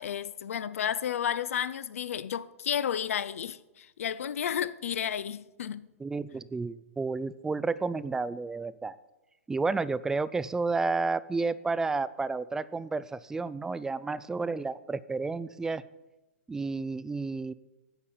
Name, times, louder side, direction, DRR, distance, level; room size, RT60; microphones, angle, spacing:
voice 1, 0.0-5.9, left 9 dB, 65° left, 0.5 m, -32 dB
voice 2, 6.0-9.0 9.5-15.8 16.5-17.5, right 3 dB, 5° right, 0.3 m, -31 dB
9.9 x 8.3 x 5.4 m
hypercardioid pair, 120°, 8 cm